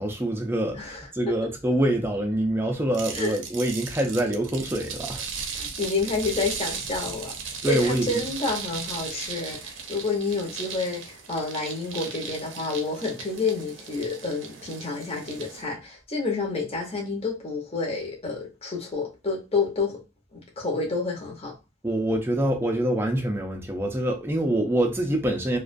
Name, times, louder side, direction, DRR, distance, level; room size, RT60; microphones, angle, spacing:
voice 1, 0.0-5.2 7.6-8.2 21.8-25.6, right 1 dB, 10° right, 0.4 m, -25 dB
sound 1, 2.9-15.6, right 5 dB, 70° right, 0.5 m, -37 dB
voice 2, 5.5-7.3 7.6-20.0 20.3-21.5, left 3 dB, 30° left, 0.7 m, -29 dB
2.3 x 2.2 x 2.5 m
head